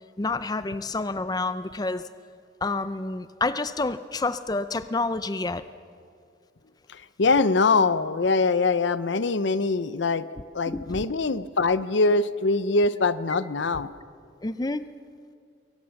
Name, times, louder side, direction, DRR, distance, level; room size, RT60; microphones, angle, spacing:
voice 1, 0.2-2.0 2.6-5.6 10.7-11.0 14.4-14.9, left 3 dB, 20° left, 13 dB, 0.5 m, -28 dB
voice 2, 6.9-10.2 10.5-13.9, left 3 dB, 75° left, 15 dB, 0.7 m, -23 dB
22.5 x 19.0 x 7.1 m, 2.3 s
head